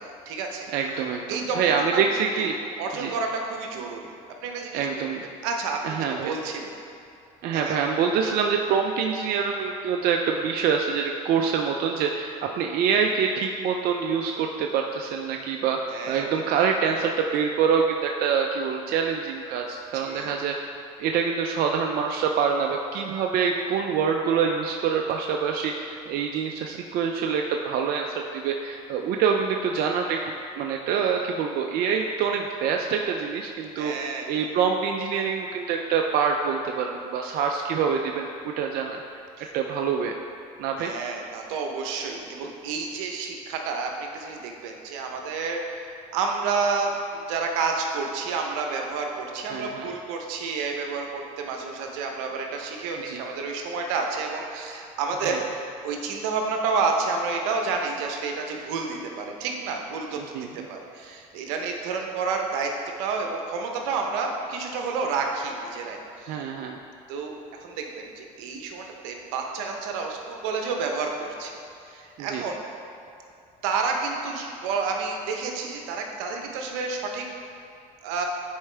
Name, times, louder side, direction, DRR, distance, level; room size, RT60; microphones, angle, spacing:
voice 1, 0.0-0.7 1.3-2.0 2.4-2.5 2.8-4.1 4.4-5.0 5.4-6.0 6.2-6.7 7.5-7.8 15.9-16.4 19.9-20.3 33.8-34.3 39.4-39.5 40.8-62.7 63.0-66.4 67.1-67.3 67.6-71.5 71.8-72.6 73.6-77.3 78.0-78.3, right 4 dB, 85° right, 2 dB, 0.9 m, -30 dB
voice 2, 0.7-2.6 3.0-3.1 4.7-5.2 5.8-6.3 7.4-15.8 16.1-20.5 21.0-33.9 34.3-39.0 39.5-40.1 40.6-40.9 49.5-49.9 53.0-53.2 55.2-55.4 60.2-60.5 66.3-66.8 72.2-72.4, right 6 dB, 65° right, 2 dB, 0.5 m, -25 dB
9.6 x 4.5 x 3.3 m, 2.5 s
supercardioid pair, 85°, 17 cm